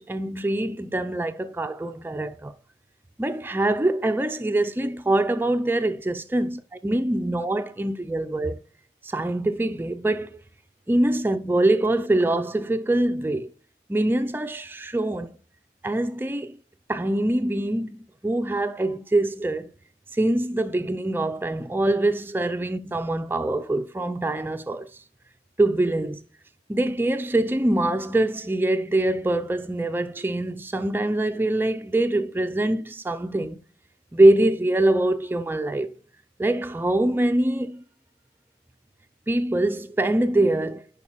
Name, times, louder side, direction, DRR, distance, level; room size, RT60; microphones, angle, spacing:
voice 1, 0.0-2.5 3.2-8.6 9.0-10.4 10.9-13.5 13.9-15.3 15.8-16.6 16.9-19.7 20.1-24.9 25.6-26.2 26.7-33.6 34.1-35.9 36.4-37.8 39.3-40.8, right 1 dB, 10° right, 0.3 m, -24 dB
9.7 x 5.3 x 3.0 m
head